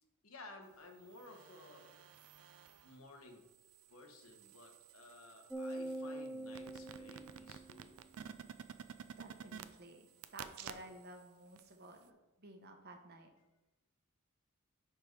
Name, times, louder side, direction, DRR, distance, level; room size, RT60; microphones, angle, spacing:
voice 1, 0.2-1.9 2.8-3.4 3.9-7.9, left 2 dB, 85° left, 3 dB, 1.2 m, -55 dB
sound 1, 1.0-3.0 3.5-11.2 11.6-11.7, right 8 dB, 90° right, 0.5 m, -53 dB
sound 2, 5.5-8.0, right 1 dB, ahead, 0.4 m, -44 dB
voice 2, 9.0-13.3, right 2 dB, 50° right, 4 dB, 1.0 m, -54 dB
10.5 x 4.5 x 3.3 m, 1.0 s
head